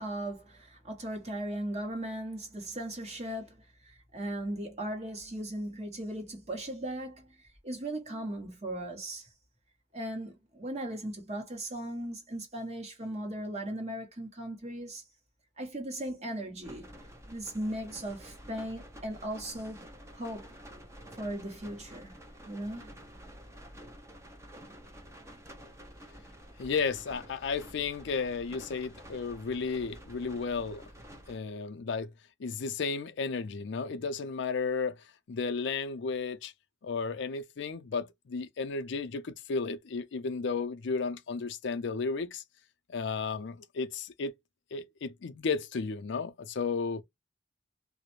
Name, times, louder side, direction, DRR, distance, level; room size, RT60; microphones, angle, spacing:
voice 1, 0.0-9.3 9.9-15.0 15.6-16.9 17.3-19.9 20.1-20.6 21.1-22.2 22.5-22.9, right 1 dB, 35° right, 1.0 m, -38 dB
sound 1, 16.6-31.4, equal, 15° right, 0.6 m, -50 dB
voice 2, 26.6-30.8 31.3-32.1 32.4-35.0 35.3-36.5 36.8-42.4 42.9-44.3 44.7-47.0, left 4 dB, 65° left, 0.4 m, -33 dB
2.4 x 2.1 x 3.0 m
head